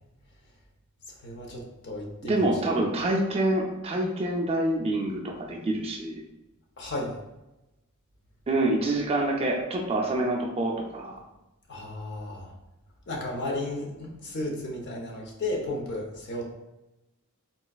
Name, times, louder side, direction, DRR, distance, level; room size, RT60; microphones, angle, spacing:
voice 1, 1.2-2.5 6.8-7.1 11.7-12.5 13.1-16.5, left 1 dB, 50° left, -1 dB, 0.7 m, -34 dB
voice 2, 2.2-6.2 8.5-11.2, right 1 dB, 25° right, 0 dB, 0.4 m, -26 dB
3.8 x 2.3 x 2.3 m, 0.97 s
head